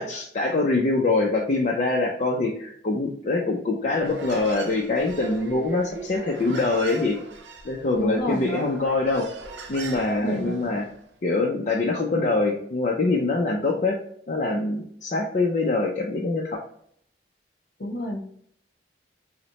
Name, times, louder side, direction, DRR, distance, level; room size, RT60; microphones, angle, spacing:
voice 1, 0.0-7.2 7.6-9.3 9.7-10.9 11.2-14.0 14.3-16.6, left 3 dB, 45° left, -1 dB, 0.5 m, -24 dB
Human voice, 3.9-11.0, right 3 dB, 85° right, 0.6 m, -39 dB
voice 2, 8.0-8.5 10.2-10.7 13.5-13.6 17.8-18.2, equal, 60° left, 1 dB, 1.1 m, -29 dB
5.8 x 2.1 x 2.9 m, 0.65 s
head